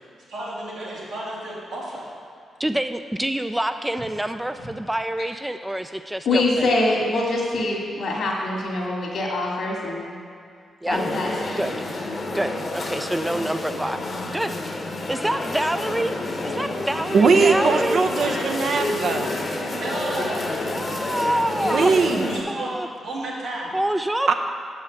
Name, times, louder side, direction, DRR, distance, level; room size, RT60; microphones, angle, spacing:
voice 1, 0.3-2.1 19.8-20.5 22.1-22.7 23.0-23.7, right 1 dB, 85° right, -8 dB, 2.4 m, -32 dB
voice 2, 2.6-6.4 10.8-11.0 11.6-11.9 12.3-14.0 14.3-14.8 15.1-18.0 20.7-22.0 22.5-22.9 23.7-24.3, right 1 dB, 10° right, 8 dB, 0.4 m, -26 dB
voice 3, 6.3-10.1 10.8-11.6, left 2 dB, 70° left, -2 dB, 2.0 m, -24 dB
sound 1, 10.9-22.4, left 2 dB, 50° left, 1.1 m, -29 dB
voice 4, 17.1-19.3 21.6-22.3 24.3-24.4, right 4 dB, 65° right, 5 dB, 0.6 m, -20 dB
6.7 x 5.6 x 7.1 m, 2.2 s
supercardioid pair, 45°, 0 cm